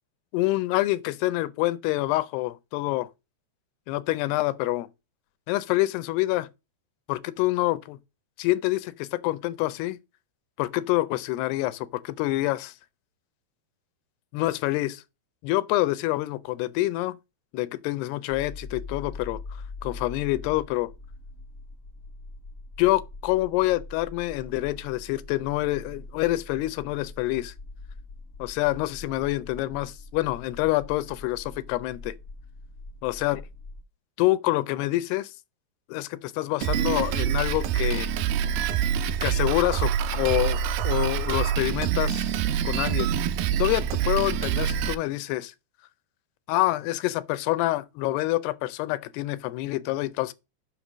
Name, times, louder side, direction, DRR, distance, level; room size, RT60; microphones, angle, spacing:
voice 1, 0.3-3.1 3.9-4.9 5.5-6.5 7.1-8.0 8.4-10.0 10.6-12.7 14.3-15.0 15.4-17.2 17.5-19.4 19.8-20.9 22.8-27.5 28.4-32.2 33.0-33.4 34.2-35.3 35.9-38.1 39.2-42.3 42.7-43.1 43.6-45.5 46.5-50.3, left 18 dB, 80° left, 2.5 m, -26 dB
sound 1, 18.3-33.8, left 3 dB, 55° left, 1.3 m, -43 dB
Drum kit, 36.6-44.9, right 8 dB, 85° right, 2.0 m, -26 dB
6.7 x 5.9 x 6.0 m
omnidirectional pair, 4.7 m